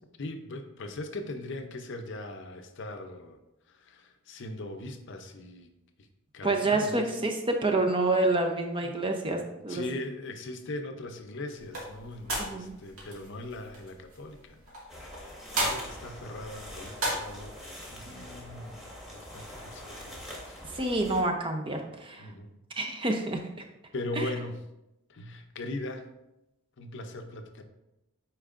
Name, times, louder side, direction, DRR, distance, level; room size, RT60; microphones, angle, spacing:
voice 1, 0.2-3.4 3.7-5.7 6.3-7.2 8.8-9.0 9.7-15.2 15.5-17.6 17.9-18.8 19.1-20.8 22.2-22.5 23.9-24.6 25.1-26.1 26.8-27.6, left 2 dB, 55° left, 6 dB, 0.6 m, -40 dB
voice 2, 6.4-9.8 12.4-12.7 20.7-22.3 22.8-23.4 24.2-24.3, right 2 dB, 25° right, 4 dB, 0.6 m, -28 dB
sound 1, 11.6-17.5, right 1 dB, 80° right, 2.0 m, -36 dB
sound 2, 14.9-21.2, left 1 dB, ahead, 1.4 m, -44 dB
8.7 x 4.5 x 2.5 m, 0.91 s
head